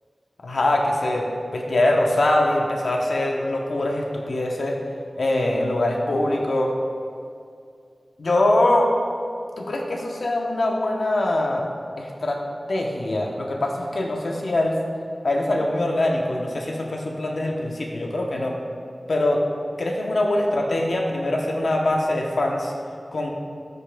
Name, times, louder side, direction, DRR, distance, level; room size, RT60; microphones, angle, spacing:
voice 1, 0.4-4.8 5.2-6.7 8.2-8.9 9.6-11.6 12.0-12.4 12.7-14.8 15.2-18.5 19.1-19.4 19.8-22.7 23.1-23.3, left 1 dB, 90° left, 0 dB, 0.8 m, -23 dB
14.5 x 5.1 x 2.2 m, 2.3 s
wide cardioid pair, 50°, 0 cm